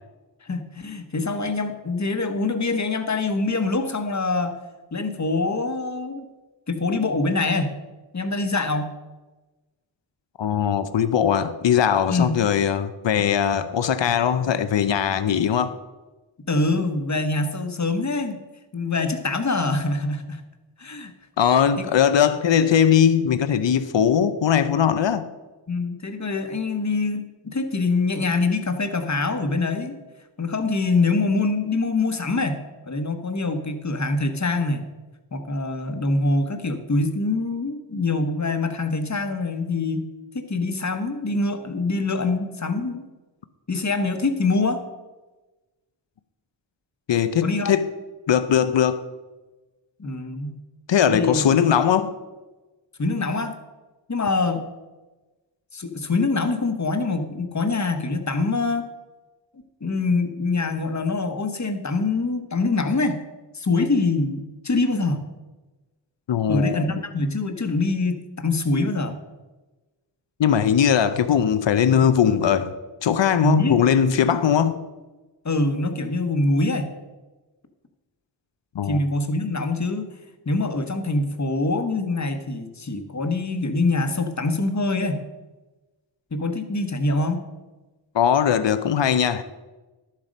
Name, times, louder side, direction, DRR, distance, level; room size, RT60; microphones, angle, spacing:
voice 1, 0.4-4.5 4.9-6.3 6.7-7.8 8.1-8.9 12.1-12.4 16.5-18.4 18.7-20.4 20.8-21.1 21.8-21.9 25.7-30.0 30.4-34.8 35.3-40.1 40.3-43.0 43.7-44.8 47.4-47.7 50.0-50.6 51.1-51.4 53.0-53.5 54.1-54.6 55.7-58.8 59.8-63.2 63.5-65.2 66.5-69.2 73.4-73.8 75.4-76.9 78.9-80.0 80.5-85.2 86.3-87.4, left 3 dB, 40° left, 1.1 m, -24 dB
voice 2, 10.4-15.8 21.4-25.3 47.1-47.9 48.3-49.0 50.9-52.1 66.3-66.9 70.4-72.7 73.0-74.8 78.7-79.0 88.1-89.4, left 8 dB, 80° left, 0.7 m, -20 dB
11.5 x 7.4 x 5.2 m
wide cardioid pair, 90°, 43 cm